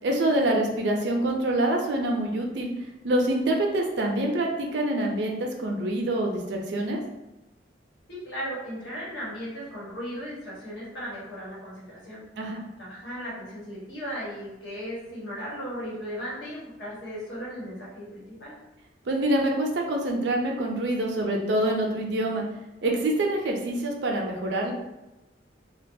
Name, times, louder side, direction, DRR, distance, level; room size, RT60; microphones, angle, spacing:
voice 1, 0.0-2.7 3.0-7.0 12.4-12.7 19.1-22.4 22.8-24.7, right 1 dB, 65° right, 1 dB, 0.5 m, -26 dB
voice 2, 8.1-12.2 12.8-18.5, equal, 75° left, -7 dB, 1.1 m, -36 dB
2.4 x 2.2 x 2.6 m, 1.0 s
head